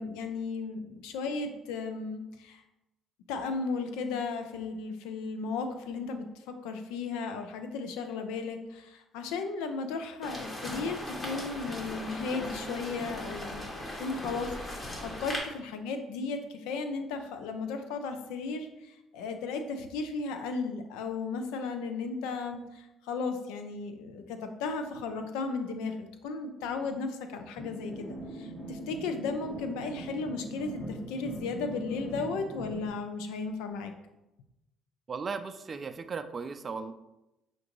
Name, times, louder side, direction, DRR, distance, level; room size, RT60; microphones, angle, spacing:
voice 1, 0.0-2.6 3.3-33.9, left 4 dB, 85° left, 7 dB, 0.5 m, -35 dB
sound 1, 10.2-15.4, left 1 dB, 30° left, 1.4 m, -38 dB
sound 2, 27.6-32.9, right 1 dB, 15° left, 1.3 m, -41 dB
voice 2, 35.1-36.9, right 5 dB, 40° right, 10 dB, 0.3 m, -36 dB
6.0 x 2.6 x 3.0 m, 0.95 s
supercardioid pair, 75°, 0 cm